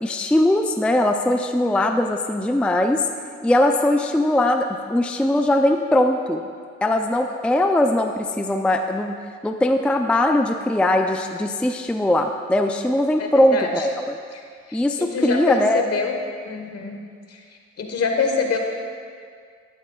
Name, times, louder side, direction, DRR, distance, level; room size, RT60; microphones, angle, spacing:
voice 1, 0.0-3.1 3.4-6.4 6.8-9.2 9.4-14.2 14.7-15.8, left 1 dB, 5° left, 5 dB, 0.4 m, -20 dB
voice 2, 13.2-13.9 14.3-14.4 14.7-16.1 16.4-17.0 17.3-17.4 17.8-18.6, left 5 dB, 55° left, 3 dB, 1.3 m, -25 dB
12.5 x 10.5 x 2.4 m, 2.1 s
cardioid pair, 90°, 30 cm